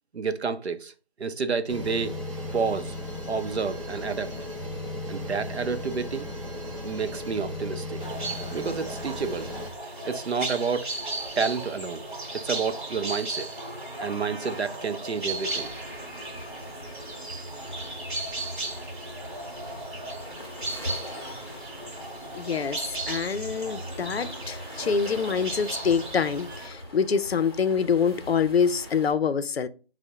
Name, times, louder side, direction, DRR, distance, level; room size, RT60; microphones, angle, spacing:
voice 1, 0.1-0.9 1.2-2.1 2.5-3.0 3.3-4.3 5.1-6.3 6.8-8.0 8.5-9.5 10.0-10.9 11.4-12.1 12.3-13.5 14.0-15.7, right 5 dB, 85° right, 0.6 m, -29 dB
sound 1, 1.7-9.7, left 1 dB, 30° right, 0.9 m, -36 dB
sound 2, 8.0-26.7, right 2 dB, 50° right, 1.1 m, -36 dB
Waves surf, 15.4-29.1, equal, 25° left, 0.6 m, -42 dB
voice 2, 22.4-29.7, left 6 dB, 75° left, 0.5 m, -26 dB
4.5 x 2.1 x 4.4 m
figure-of-eight pair, 165°, 32 cm